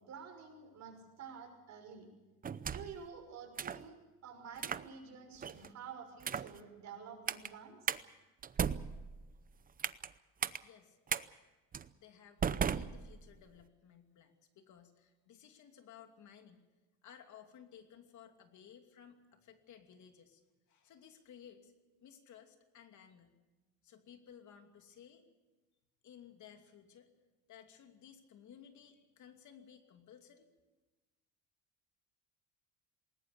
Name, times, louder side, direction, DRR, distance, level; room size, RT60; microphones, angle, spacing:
voice 1, 0.0-2.1 2.7-7.8, right 6 dB, 50° right, 3 dB, 6.4 m, -50 dB
sound 1, 2.4-3.0 3.6-3.8 4.6-4.9 5.4-5.7 6.2-6.6 7.3-7.5 7.9-8.0 8.4-10.1 10.4-10.6 11.1-11.2 11.7-11.9 12.4-13.5, right 7 dB, 25° right, 0.7 m, -36 dB
voice 2, 10.6-11.0 12.0-16.6 17.0-20.4 20.7-21.7 22.0-23.4 23.8-25.3 26.0-27.1 27.5-30.5, left 8 dB, 55° left, 6 dB, 2.8 m, -57 dB
19.5 x 19.5 x 8.4 m, 1.2 s
cardioid pair, 115°, 35 cm